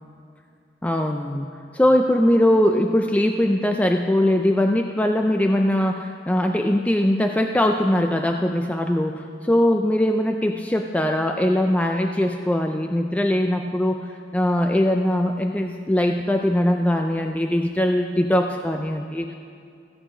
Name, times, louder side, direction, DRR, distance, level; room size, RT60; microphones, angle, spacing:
voice 1, 0.8-14.1 14.3-19.3, left 1 dB, 10° left, 4 dB, 0.3 m, -21 dB
15.0 x 8.3 x 5.0 m, 2.4 s
head